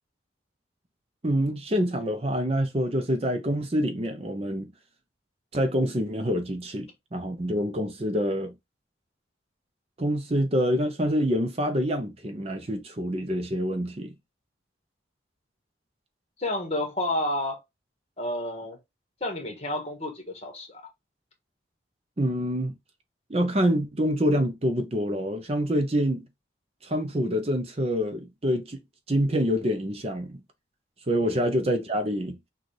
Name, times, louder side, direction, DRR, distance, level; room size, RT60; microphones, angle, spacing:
voice 1, 1.2-4.7 5.5-8.5 10.0-14.1 22.2-22.7 23.3-26.3 26.8-28.8 29.1-30.4 31.1-32.4, equal, 30° right, 0.6 m, -26 dB
voice 2, 16.4-17.6 18.2-18.8 19.2-20.8 31.2-31.4, left 1 dB, 35° left, 1.4 m, -30 dB
6.2 x 2.4 x 3.3 m
head